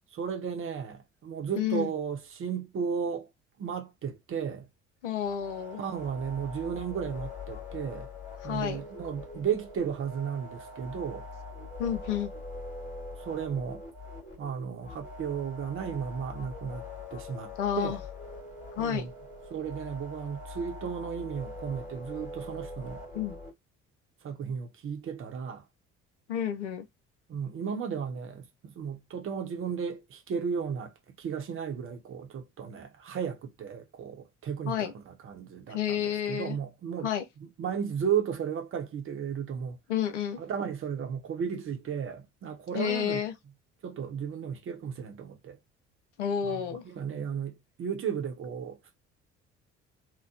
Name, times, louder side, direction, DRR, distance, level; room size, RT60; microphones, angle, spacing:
voice 1, 0.1-3.3 3.6-4.7 5.8-8.1 8.4-11.3 13.2-13.8 14.4-16.8 17.1-18.0 18.8-19.1 19.5-23.0 24.2-25.6 27.3-37.1 37.4-39.8 40.4-43.3 43.8-45.6 46.4-48.8, right 7 dB, 35° right, 0.8 m, -34 dB
voice 2, 1.6-1.9 5.0-5.8 8.4-8.8 11.8-12.3 17.6-18.0 18.7-19.1 23.1-23.4 26.3-26.8 34.7-34.9 35.7-36.6 37.0-37.2 39.9-40.4 42.7-43.3 46.2-46.8, left 9 dB, 75° left, 0.5 m, -30 dB
sound 1, 5.2-23.5, left 2 dB, 20° left, 1.4 m, -43 dB
2.9 x 2.1 x 2.4 m
figure-of-eight pair, 50°, 36 cm